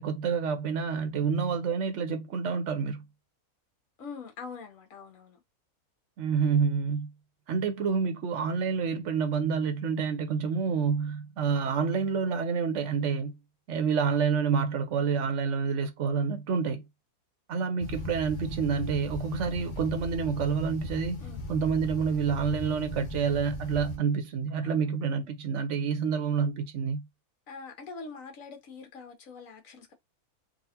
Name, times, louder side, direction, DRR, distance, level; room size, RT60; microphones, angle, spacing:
voice 1, 0.0-3.0 6.2-7.1 7.5-13.4 13.7-16.8 17.5-27.1, right 6 dB, 60° right, 1.0 m, -28 dB
voice 2, 4.0-5.4 21.2-21.4 24.6-25.0 27.5-29.9, left 4 dB, 65° left, 1.3 m, -44 dB
sound 1, 17.8-24.0, left 3 dB, 45° left, 0.6 m, -38 dB
3.8 x 2.4 x 2.8 m
omnidirectional pair, 1.6 m